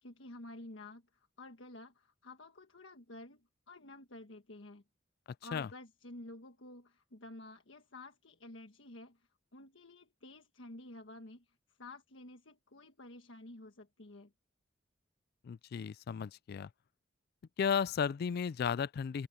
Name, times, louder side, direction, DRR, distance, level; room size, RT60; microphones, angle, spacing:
voice 1, 0.0-4.8 5.4-9.2 9.5-14.3, left 2 dB, 85° left, 1.4 m, -51 dB
voice 2, 15.4-16.7 17.6-19.3, left 7 dB, 55° left, 0.3 m, -34 dB
open air
head